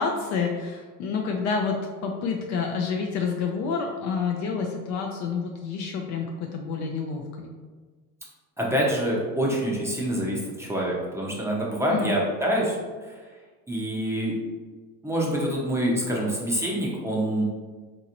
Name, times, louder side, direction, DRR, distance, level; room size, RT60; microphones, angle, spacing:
voice 1, 0.0-1.8 2.0-7.5 11.9-12.1, left 5 dB, 45° left, 2 dB, 0.4 m, -28 dB
voice 2, 8.6-12.8 13.7-14.3 15.0-17.4, right 1 dB, 5° right, -4 dB, 0.6 m, -26 dB
3.9 x 2.6 x 2.8 m, 1.4 s
supercardioid pair, 115°, 42 cm